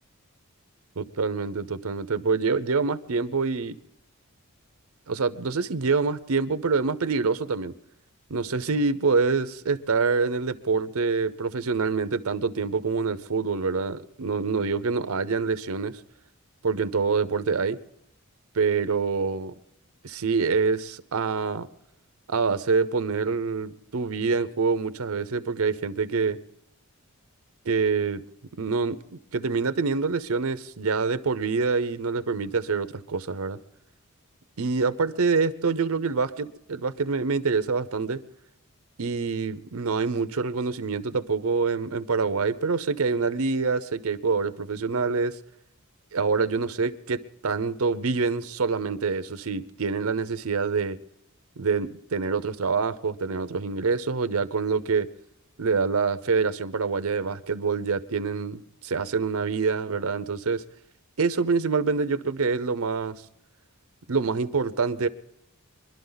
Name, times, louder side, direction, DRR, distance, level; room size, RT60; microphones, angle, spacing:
voice 1, 1.0-3.8 5.1-7.7 8.3-16.0 16.6-17.8 18.5-19.5 20.0-21.7 22.3-26.4 27.6-28.2 28.6-29.0 29.3-33.6 34.6-38.2 39.0-45.4 46.1-51.0 51.6-55.1 55.6-60.6 61.2-63.2 64.1-65.1, right 4 dB, 80° right, 0.7 m, -26 dB
23.5 x 12.0 x 4.0 m
head